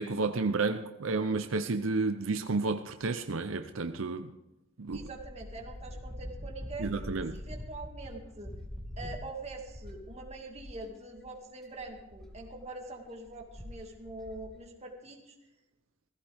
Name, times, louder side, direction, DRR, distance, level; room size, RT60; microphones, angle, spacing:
voice 1, 0.0-4.3 4.8-5.1 6.8-7.4, right 3 dB, 75° right, 8 dB, 0.7 m, -31 dB
sound 1, 4.9-10.8 11.2-11.3 11.6-14.6, equal, ahead, 2.3 m, -44 dB
voice 2, 4.9-6.9 7.3-8.5 9.0-15.4, right 2 dB, 30° right, 2 dB, 2.2 m, -44 dB
17.5 x 16.0 x 3.5 m, 0.99 s
head